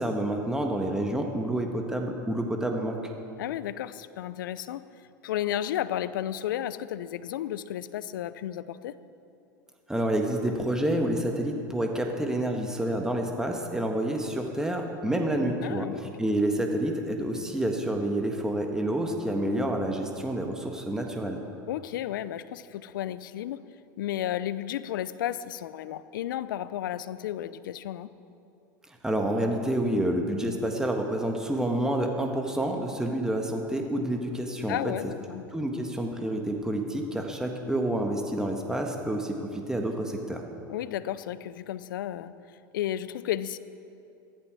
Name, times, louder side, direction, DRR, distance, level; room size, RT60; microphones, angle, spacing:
voice 1, 0.0-3.0 9.9-21.4 29.0-34.9 35.5-40.4, right 1 dB, 5° right, 2 dB, 1.6 m, -28 dB
voice 2, 3.4-4.8 5.2-9.0 15.6-16.0 21.7-23.6 24.0-28.1 34.7-35.5 40.7-42.3 42.7-43.6, left 12 dB, 70° left, 16 dB, 0.6 m, -33 dB
15.0 x 13.5 x 6.2 m, 2.7 s
hypercardioid pair, 85°, 11 cm